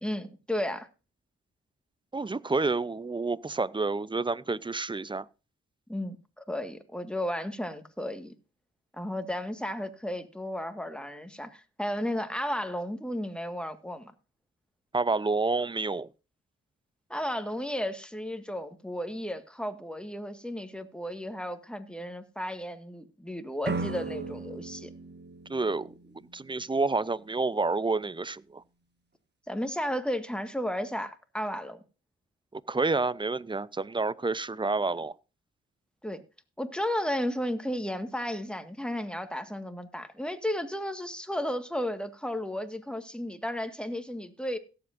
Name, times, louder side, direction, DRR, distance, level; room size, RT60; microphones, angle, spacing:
voice 1, 0.0-0.9 5.9-8.3 8.9-14.1 17.1-24.9 29.5-31.8 36.0-36.2 36.6-44.6, equal, 5° left, 1.7 m, -33 dB
voice 2, 2.1-5.3 14.9-16.1 25.5-25.9 26.3-28.6 32.5-35.1, right 3 dB, 15° right, 0.5 m, -29 dB
sound 1, 23.6-26.5, right 3 dB, 35° right, 1.3 m, -37 dB
17.5 x 7.9 x 2.6 m
supercardioid pair, 45°, 29 cm